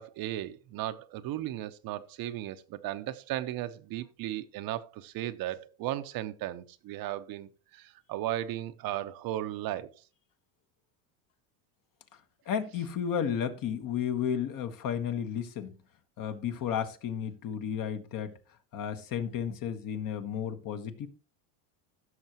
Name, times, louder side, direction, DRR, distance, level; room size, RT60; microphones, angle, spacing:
voice 1, 0.0-9.9, right 13 dB, 50° right, 0.8 m, -36 dB
voice 2, 12.5-15.7 16.2-18.3 18.7-21.1, left 8 dB, 45° left, 1.4 m, -33 dB
15.5 x 6.4 x 2.9 m
supercardioid pair, 110°, 46 cm